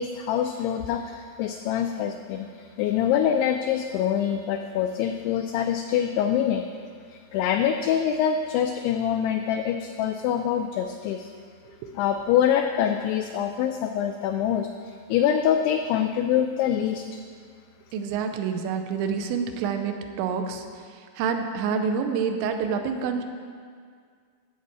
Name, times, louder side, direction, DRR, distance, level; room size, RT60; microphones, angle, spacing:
voice 1, 0.0-6.7 7.1-11.3 11.9-17.0, left 9 dB, 90° left, 5 dB, 2.3 m, -25 dB
voice 2, 17.9-20.7 21.2-23.2, right 6 dB, 85° right, 5 dB, 3.1 m, -27 dB
13.0 x 4.5 x 8.0 m, 2.1 s
omnidirectional pair, 5.2 m